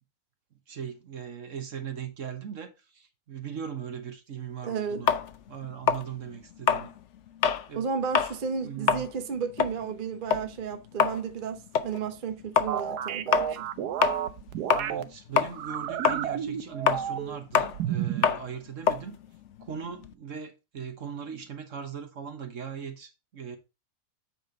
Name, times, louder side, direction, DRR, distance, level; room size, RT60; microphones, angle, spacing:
voice 1, 0.7-5.1 5.5-6.9 7.7-7.8 8.6-9.1 14.7-19.2 19.6-23.6, right 7 dB, 55° right, 1.4 m, -39 dB
voice 2, 4.6-5.0 7.7-13.7, right 6 dB, 40° right, 0.9 m, -33 dB
sound 1, 5.1-7.7 8.0-8.4 8.7-15.1 15.4-20.1, left 7 dB, 60° left, 0.8 m, -27 dB
sound 2, 12.7-15.0 15.5-17.4 17.7-18.3, right 10 dB, 75° right, 1.2 m, -31 dB
8.4 x 5.1 x 3.9 m
omnidirectional pair, 1.7 m